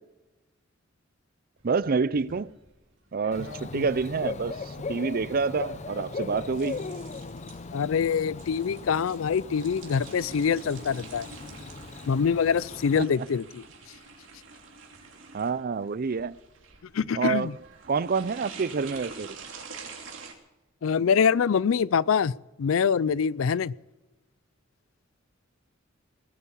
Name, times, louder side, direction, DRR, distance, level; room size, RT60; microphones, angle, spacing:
voice 1, 1.6-2.5 3.1-6.8 12.9-13.0 15.3-16.4 17.1-17.5 17.9-19.4, right 5 dB, 50° right, 0.5 m, -28 dB
sound 1, 1.6-20.3, right 4 dB, 70° right, 2.9 m, -47 dB
Bird / Cricket, 3.3-13.0, left 4 dB, 35° left, 0.6 m, -39 dB
voice 2, 7.7-11.3 12.1-13.6 16.9-17.5 20.8-22.3 22.6-23.7, left 6 dB, 85° left, 0.4 m, -24 dB
19.5 x 8.4 x 8.4 m
head